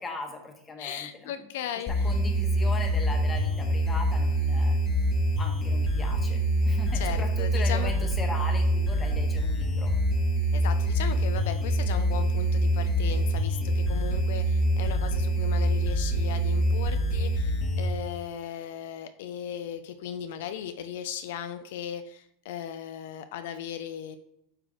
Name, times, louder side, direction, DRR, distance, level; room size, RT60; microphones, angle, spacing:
voice 1, 0.0-1.3 2.0-4.8 5.4-9.9, left 3 dB, 20° left, 3 dB, 1.2 m, -38 dB
voice 2, 0.8-2.1 6.9-7.9 10.5-24.2, left 9 dB, 75° left, 9 dB, 0.4 m, -37 dB
sound 1, 1.9-17.9, right 1 dB, 35° left, 1.0 m, -25 dB
8.8 x 3.2 x 3.7 m, 0.76 s
supercardioid pair, 115°, 0 cm